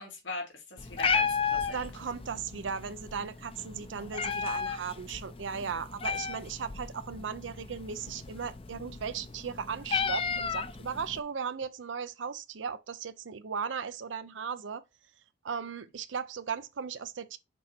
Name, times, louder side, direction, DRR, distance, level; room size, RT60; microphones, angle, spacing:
voice 1, 0.0-1.8 5.5-5.8, left 3 dB, 85° left, 2.9 m, -41 dB
Meow, 0.8-11.2, left 5 dB, 30° left, 0.5 m, -34 dB
voice 2, 1.7-14.8 15.4-17.4, right 6 dB, 90° right, 0.5 m, -37 dB
6.3 x 4.0 x 4.3 m
head